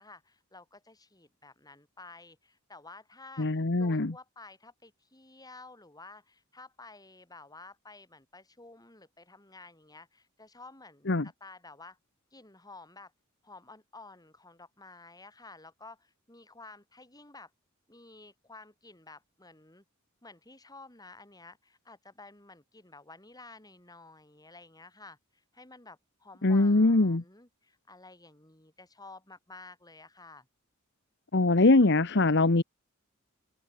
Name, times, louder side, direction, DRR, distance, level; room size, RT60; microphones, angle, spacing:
voice 1, 0.0-12.0 12.3-13.1 13.4-17.5 17.9-19.8 20.2-30.5, left 3 dB, 20° left, 8.0 m, -52 dB
voice 2, 3.4-4.1 11.1-11.3 26.4-27.2 31.3-32.6, left 2 dB, 55° left, 1.1 m, -22 dB
head